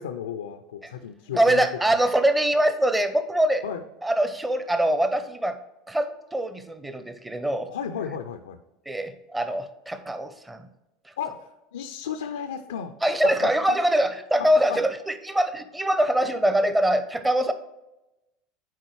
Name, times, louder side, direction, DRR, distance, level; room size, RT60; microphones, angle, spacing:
voice 1, 0.0-1.7 3.6-3.8 7.7-8.6 11.2-12.9 13.2-13.8 14.4-14.8, left 8 dB, 75° left, 8 dB, 0.4 m, -34 dB
voice 2, 1.3-3.6 4.0-5.6 5.9-7.7 8.9-10.7 13.0-17.5, right 1 dB, 10° right, 10 dB, 0.7 m, -23 dB
9.1 x 4.0 x 3.1 m, 0.96 s
hypercardioid pair, 80°, 0 cm